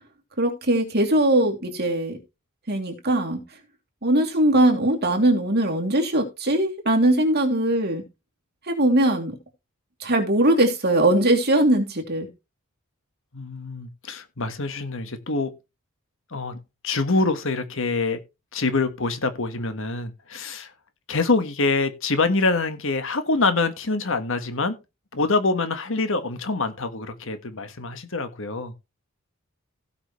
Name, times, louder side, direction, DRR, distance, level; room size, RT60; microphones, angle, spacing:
voice 1, 0.4-2.2 2.7-3.4 4.0-8.0 8.7-9.4 10.0-12.3, right 1 dB, 50° right, 2.9 m, -20 dB
voice 2, 13.3-15.5 16.3-18.2 18.5-20.7 21.1-24.8 25.1-28.7, left 3 dB, 65° left, 1.5 m, -25 dB
16.5 x 6.0 x 3.2 m
head